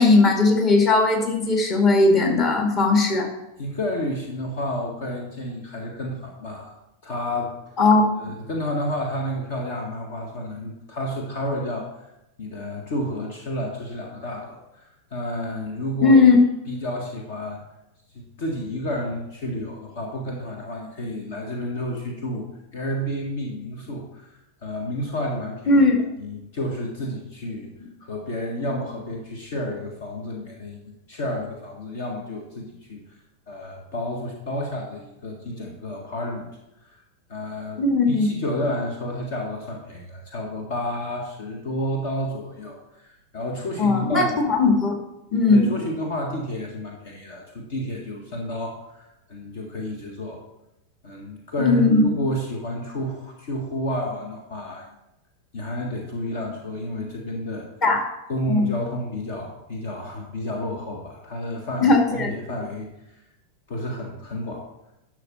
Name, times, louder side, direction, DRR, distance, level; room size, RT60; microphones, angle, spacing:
voice 1, 0.0-3.3 7.8-8.0 16.0-16.4 25.7-26.0 37.8-38.3 43.8-44.9 45.3-45.7 51.6-52.1 57.8-58.0 58.5-58.7 61.8-62.3, left 3 dB, 30° left, 2 dB, 2.0 m, -18 dB
voice 2, 3.6-6.7 7.0-7.5 8.2-12.1 12.4-16.2 16.7-17.6 18.1-22.5 22.7-24.3 24.6-25.8 26.2-27.7 28.0-30.8 31.1-33.0 33.5-36.5 36.8-37.0 37.3-37.8 38.1-44.4 45.5-49.0 49.3-50.4 51.0-54.8 55.5-57.7 58.3-62.9 63.7-64.6, left 1 dB, 50° left, 1 dB, 1.7 m, -30 dB
11.5 x 6.4 x 4.2 m, 0.89 s
figure-of-eight pair, 90°, 0 cm